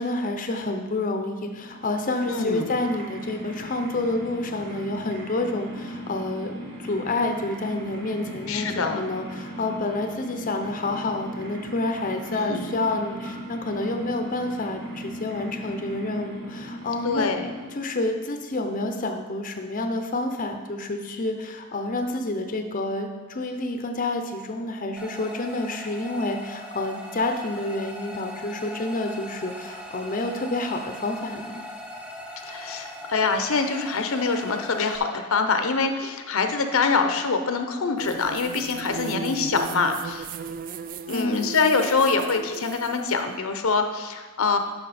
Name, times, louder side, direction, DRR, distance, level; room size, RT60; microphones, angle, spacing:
voice 1, 0.0-6.5 6.8-17.3 17.7-31.6 41.1-41.5, left 2 dB, 40° left, 5 dB, 0.6 m, -28 dB
sound 1, 1.3-18.0, equal, 55° right, 1.6 m, -38 dB
voice 2, 2.3-2.7 8.5-9.0 12.3-12.8 17.0-17.5 32.4-40.3 41.1-44.6, left 4 dB, 75° left, 7 dB, 0.7 m, -25 dB
sound 2, 25.0-35.0, left 1 dB, 5° right, 0.7 m, -40 dB
sound 3, 38.0-43.1, right 6 dB, 40° right, 0.3 m, -36 dB
10.0 x 5.9 x 4.2 m, 1.3 s
head